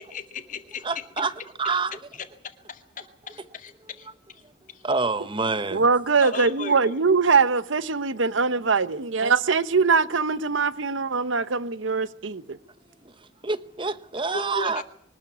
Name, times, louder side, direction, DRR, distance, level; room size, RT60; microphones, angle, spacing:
voice 1, 0.0-0.9 2.2-4.4 4.7-4.9 6.2-7.0 14.3-14.8, left 3 dB, 40° left, 2.2 m, -37 dB
voice 2, 0.8-1.3 1.6-2.0 4.8-5.8 13.0-13.1 13.4-14.8, right 4 dB, 25° right, 1.0 m, -27 dB
voice 3, 5.7-12.6, right 4 dB, 80° right, 0.9 m, -22 dB
24.0 x 13.0 x 9.5 m
head